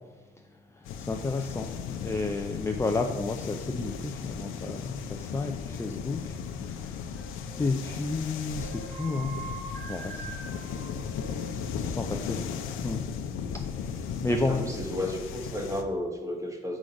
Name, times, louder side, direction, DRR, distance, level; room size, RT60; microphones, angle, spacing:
sound 1, 0.8-15.8, left 7 dB, 90° left, 0.7 m, -36 dB
voice 1, 1.1-6.4 7.6-9.3 9.9-10.3 11.8-12.4 12.8-13.0 14.2-14.6, left 3 dB, 15° left, 3 dB, 0.5 m, -31 dB
sound 2, 7.1-7.5 8.3-11.8, right 4 dB, 35° right, 1.9 m, -43 dB
voice 2, 14.2-16.8, left 1 dB, 15° right, 2 dB, 1.4 m, -33 dB
6.2 x 5.1 x 5.2 m, 1.3 s
cardioid pair, 90°, 20 cm